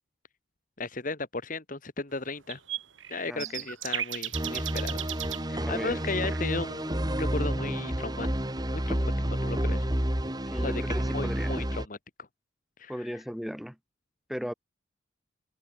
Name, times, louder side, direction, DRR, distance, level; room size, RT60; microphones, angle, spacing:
voice 1, 0.8-2.6 3.1-5.1 5.5-8.3 8.7-9.9 10.5-10.8 11.1-12.3 12.8-13.2, left 3 dB, 45° left, 1.6 m, -35 dB
sound 1, 2.5-5.4 6.3-6.4, right 12 dB, 80° right, 5.8 m, -35 dB
voice 2, 3.3-3.6 5.6-6.0 10.4-11.6 12.9-13.8 14.3-14.5, equal, ahead, 5.7 m, -36 dB
sound 2, 4.3-11.9, right 1 dB, 20° right, 2.2 m, -30 dB
head